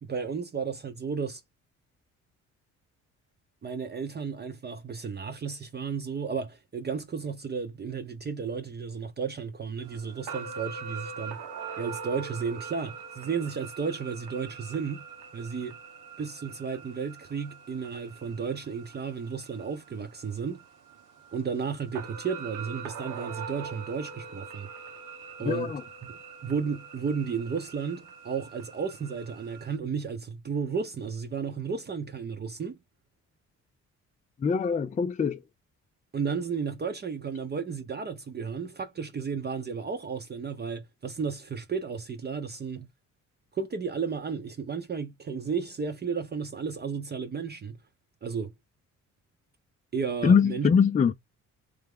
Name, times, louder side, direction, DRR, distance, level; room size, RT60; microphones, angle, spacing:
voice 1, 0.0-1.4 3.6-11.4 11.8-15.1 15.3-15.8 16.2-20.6 21.3-24.7 25.4-25.7 26.4-32.8 36.1-42.9 43.5-47.8 48.2-48.5 49.9-50.7, right 5 dB, 35° right, 0.8 m, -33 dB
sound 1, 9.8-29.8, right 6 dB, 85° right, 1.1 m, -43 dB
voice 2, 25.4-25.8 34.4-35.4 50.2-51.1, left 6 dB, 25° left, 0.5 m, -23 dB
3.4 x 3.3 x 3.5 m
cardioid pair, 90°, 30 cm